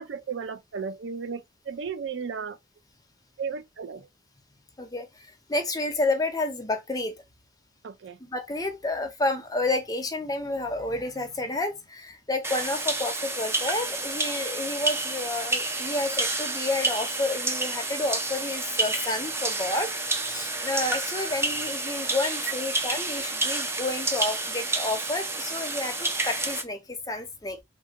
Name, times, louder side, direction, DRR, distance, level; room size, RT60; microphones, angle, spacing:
voice 1, 0.0-2.6 3.4-4.1 7.8-8.2, right 6 dB, 75° right, 0.4 m, -34 dB
voice 2, 4.8-7.2 8.2-27.6, left 2 dB, 20° left, 0.6 m, -30 dB
sound 1, 12.4-26.6, right 2 dB, 15° right, 0.5 m, -29 dB
3.2 x 2.2 x 2.8 m
head